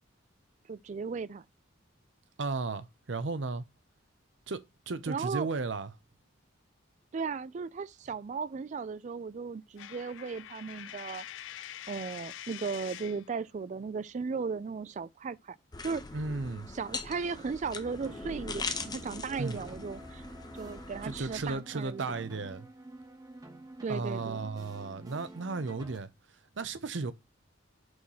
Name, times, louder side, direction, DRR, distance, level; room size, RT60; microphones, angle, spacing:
voice 1, 0.7-1.4 5.1-5.5 7.1-11.3 11.9-15.6 15.8-16.0 16.7-20.3 20.5-22.1 23.8-24.5, right 5 dB, 40° right, 0.3 m, -36 dB
voice 2, 2.4-3.6 4.5-4.6 4.9-5.9 16.1-16.7 19.4-19.6 21.0-22.7 23.9-26.1 26.6-27.1, right 3 dB, 65° right, 0.7 m, -34 dB
Coin (dropping), 9.8-13.3, left 12 dB, 70° left, 0.3 m, -45 dB
sound 1, 15.7-21.5, left 4 dB, 20° left, 0.6 m, -41 dB
sound 2, 18.0-26.0, right 1 dB, 20° right, 0.9 m, -49 dB
6.2 x 3.1 x 5.5 m
head